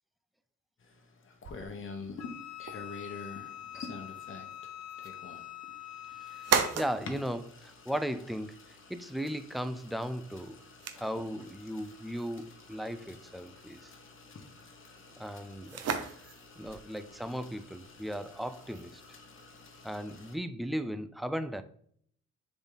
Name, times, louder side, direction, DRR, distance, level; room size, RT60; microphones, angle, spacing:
sound 1, 0.8-20.4, left 4 dB, 45° left, 1.3 m, -49 dB
sound 2, 1.4-19.9, right 7 dB, 55° right, 0.9 m, -40 dB
Wind instrument woodwind instrument, 2.2-6.8, left 12 dB, 60° left, 0.7 m, -44 dB
voice 1, 6.7-8.6 8.9-10.6 10.9-13.9 15.2-15.8 16.6-19.0 19.8-21.6, equal, ahead, 10 dB, 0.5 m, -36 dB
6.8 x 4.2 x 4.0 m, 0.62 s
cardioid pair, 90°, 30 cm